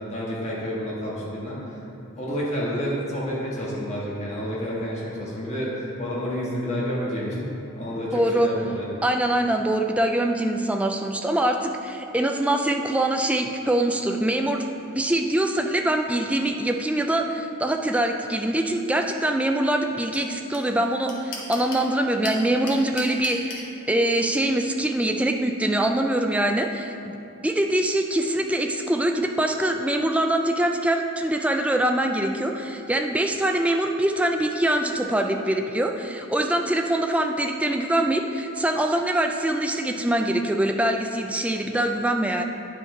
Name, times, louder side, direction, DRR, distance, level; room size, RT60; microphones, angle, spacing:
voice 1, 0.1-1.8 2.2-8.8, equal, 30° left, -6 dB, 1.5 m, -29 dB
voice 2, 8.1-8.5 9.0-14.7 14.9-27.1 27.4-42.4, right 1 dB, 5° right, 3 dB, 0.3 m, -24 dB
sound 1, 20.1-20.2 20.5-20.6 20.8-21.9 22.2-23.6, left 4 dB, 55° left, 1.3 m, -34 dB
10.0 x 5.1 x 3.8 m, 2.8 s
head